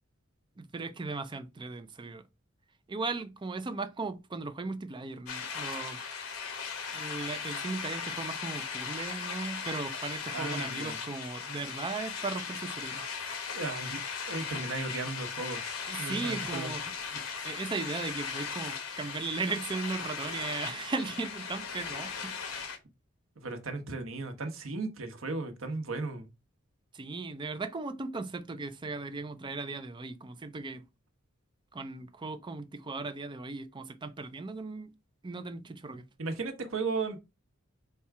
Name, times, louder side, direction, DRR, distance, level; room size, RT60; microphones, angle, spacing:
voice 1, 0.6-2.2 2.9-6.0 6.9-13.0 15.9-22.4 26.9-30.8 31.7-34.9 35.2-36.0, right 3 dB, 25° right, 0.4 m, -37 dB
sound 1, 5.3-22.8, left 6 dB, 85° left, 0.9 m, -38 dB
voice 2, 10.3-11.0 13.5-14.0 14.3-15.7 16.0-16.7 23.4-26.3 36.2-37.2, right 3 dB, 75° right, 0.9 m, -35 dB
4.2 x 2.3 x 4.6 m
head